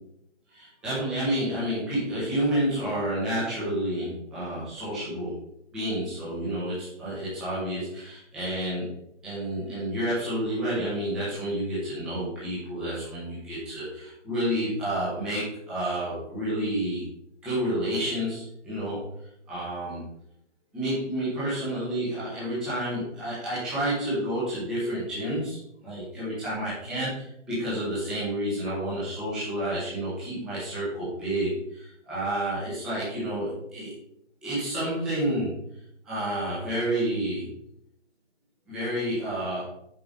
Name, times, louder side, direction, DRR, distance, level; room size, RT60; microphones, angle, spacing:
voice 1, 0.5-5.4 5.7-8.9 9.2-17.0 17.4-19.1 19.5-20.0 20.7-33.9 34.4-35.6 36.0-37.5 38.7-39.6, right 1 dB, ahead, -11 dB, 1.2 m, -30 dB
9.0 x 6.8 x 4.0 m, 0.77 s
hypercardioid pair, 170°, 37 cm